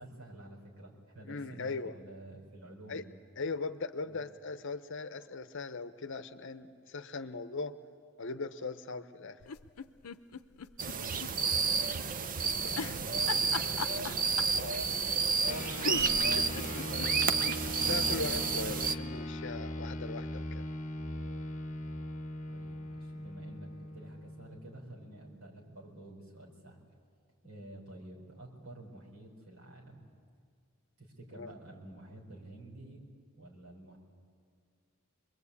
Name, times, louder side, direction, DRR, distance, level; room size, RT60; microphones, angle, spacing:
voice 1, 0.0-3.1 4.0-4.2 11.5-14.5 15.7-17.4 22.5-26.8 27.4-30.0 31.0-33.0 33.4-34.0, right 1 dB, 70° right, -2 dB, 4.9 m, -50 dB
voice 2, 1.3-2.0 2.9-3.0 3.4-7.8 8.2-9.4 14.5-14.8 17.9-20.7 31.3-31.6, left 3 dB, 55° left, 11 dB, 0.8 m, -39 dB
sound 1, 9.4-11.3 11.6-11.7 12.7-14.6 15.5-15.6 15.8-17.6 18.0-18.1 18.3-18.4, left 5 dB, 90° left, 0.7 m, -38 dB
sound 2, 10.8-18.9, right 5 dB, 40° right, 0.6 m, -31 dB
sound 3, 15.5-25.2, left 1 dB, 35° left, 1.2 m, -40 dB
25.5 x 21.5 x 8.4 m, 2.1 s
head